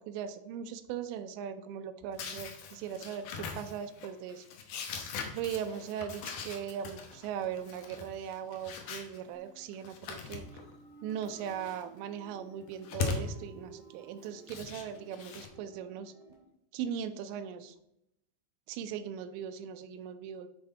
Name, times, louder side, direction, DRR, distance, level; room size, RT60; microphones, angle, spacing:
voice 1, 0.0-4.5 5.3-10.5 11.0-16.1 16.7-17.8 18.7-20.5, right 8 dB, 85° right, 10 dB, 2.8 m, -39 dB
sound 1, 2.1-9.2 9.7-10.7 11.1-11.8 12.6-13.3 14.2-15.5, left 5 dB, 75° left, 1.9 m, -40 dB
sound 2, 9.3-16.4, right 4 dB, 35° right, 1.2 m, -54 dB
10.5 x 3.9 x 4.1 m, 0.81 s
omnidirectional pair, 5.0 m